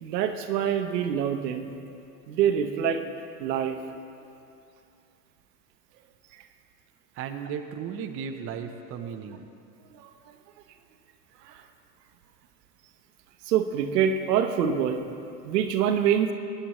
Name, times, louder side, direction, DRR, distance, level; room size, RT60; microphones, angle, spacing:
voice 1, 0.0-1.8 2.3-3.0 3.4-3.8 10.0-10.1 11.4-11.6 13.5-15.0 15.4-16.3, right 8 dB, 80° right, 6 dB, 1.0 m, -25 dB
voice 2, 7.1-9.5, right 7 dB, 30° right, 5 dB, 0.6 m, -35 dB
15.0 x 9.9 x 3.1 m, 2.5 s
hypercardioid pair, 110°, 48 cm